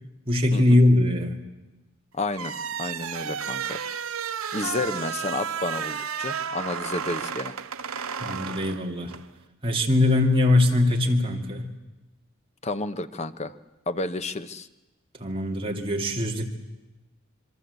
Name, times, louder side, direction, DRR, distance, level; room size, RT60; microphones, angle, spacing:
voice 1, 0.3-1.4 8.2-9.1 9.6-11.7 15.2-16.4, left 2 dB, 25° right, 1 dB, 2.5 m, -21 dB
voice 2, 2.1-2.5 2.8-3.8 4.5-7.5 12.6-13.5 13.9-14.7, left 2 dB, 30° left, 11 dB, 0.9 m, -31 dB
sound 1, 2.3-9.3, right 7 dB, 75° right, 0.9 m, -32 dB
26.0 x 23.0 x 8.2 m, 1.1 s
head